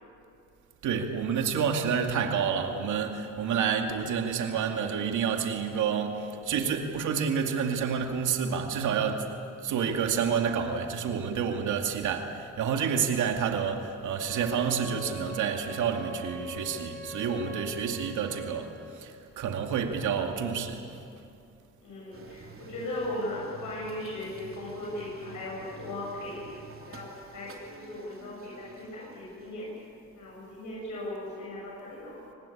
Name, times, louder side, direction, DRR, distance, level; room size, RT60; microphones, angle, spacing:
voice 1, 0.8-9.3 9.6-20.8, right 7 dB, 80° right, 4 dB, 2.4 m, -29 dB
Wind instrument woodwind instrument, 14.2-18.7, left 1 dB, 10° left, 5.6 m, -42 dB
voice 2, 21.8-26.4 26.9-29.7 30.1-32.2, left 1 dB, 75° left, -6 dB, 7.9 m, -37 dB
sound 1, 22.1-29.7, right 4 dB, 45° right, 3.3 m, -49 dB
24.5 x 19.5 x 8.6 m, 2.5 s
cardioid pair, 90°, 30 cm